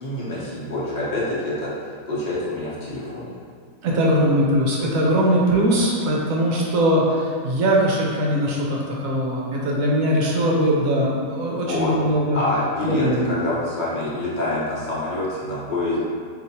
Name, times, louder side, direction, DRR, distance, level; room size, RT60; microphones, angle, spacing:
voice 1, 0.0-1.7 2.1-3.3 11.6-11.9 12.3-16.0, left 2 dB, 35° left, -9 dB, 0.9 m, -26 dB
voice 2, 3.8-12.4 12.8-13.3, equal, 65° right, -3 dB, 1.1 m, -21 dB
4.8 x 2.8 x 2.8 m, 2.1 s
omnidirectional pair, 1.7 m